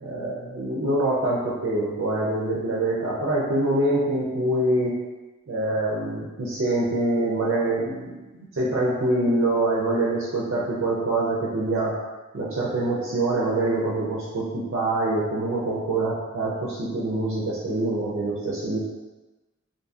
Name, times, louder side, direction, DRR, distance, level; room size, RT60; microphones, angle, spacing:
voice 1, 0.0-4.9 5.5-11.9 12.3-18.8, right 2 dB, 55° right, -6 dB, 0.4 m, -25 dB
2.6 x 2.6 x 2.3 m, 1.1 s
head